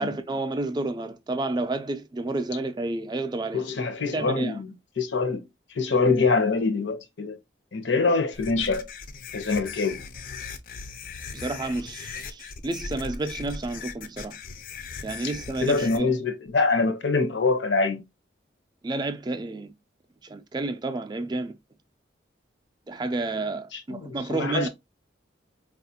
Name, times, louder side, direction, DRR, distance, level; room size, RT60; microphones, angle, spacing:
voice 1, 0.0-3.7 4.1-4.6 11.3-14.4 15.0-16.1 18.8-19.7 20.2-21.5 22.9-24.7, right 2 dB, 20° right, 0.3 m, -30 dB
voice 2, 3.5-4.7 5.0-5.4 5.7-7.4 7.7-8.9 9.3-10.0 15.6-18.0 23.7-24.7, left 4 dB, 75° left, 0.7 m, -24 dB
sound 1, 8.3-16.0, left 5 dB, 45° left, 0.4 m, -39 dB
4.3 x 2.4 x 2.7 m
head